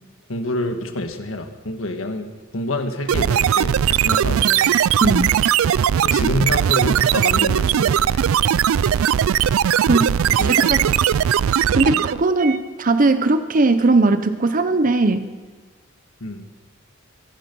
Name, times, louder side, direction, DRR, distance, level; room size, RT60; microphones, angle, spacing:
voice 1, 0.3-2.3 2.5-4.8 6.0-8.3 10.2-10.8 11.8-12.0 16.2-16.5, left 1 dB, 75° left, 5 dB, 1.7 m, -27 dB
sound 1, 3.1-12.3, right 9 dB, 90° right, 0.4 m, -18 dB
voice 2, 5.0-5.3 9.9-10.1 10.4-10.9 11.8-15.3, right 3 dB, 40° right, 10 dB, 0.8 m, -18 dB
23.5 x 10.5 x 5.5 m, 1.5 s
head